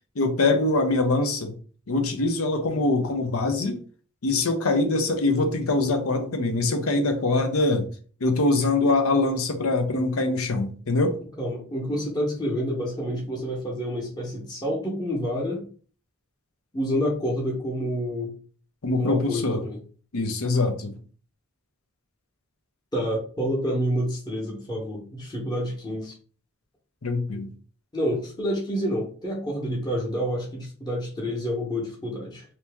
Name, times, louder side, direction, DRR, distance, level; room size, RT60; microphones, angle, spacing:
voice 1, 0.2-1.5 1.9-3.8 4.2-7.9 8.2-11.2 18.8-19.6 20.1-20.9 27.0-27.5, left 2 dB, 85° left, 0.7 m, -23 dB
voice 2, 11.4-15.6 16.7-18.3 19.0-19.8 22.9-26.2 27.9-32.4, equal, 20° left, 1.0 m, -28 dB
2.8 x 2.8 x 3.5 m
head